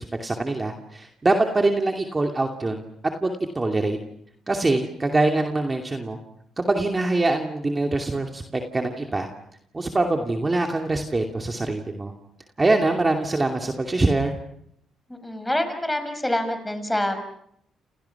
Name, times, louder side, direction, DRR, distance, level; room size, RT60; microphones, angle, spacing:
voice 1, 0.0-2.8 3.2-4.0 4.5-6.2 6.6-9.3 9.7-12.1 12.6-14.3, right 2 dB, 25° right, 3 dB, 2.6 m, -24 dB
voice 2, 15.2-17.2, left 1 dB, 10° left, 8 dB, 6.1 m, -26 dB
29.5 x 29.0 x 5.9 m, 0.73 s
cardioid pair, 90°, 0 cm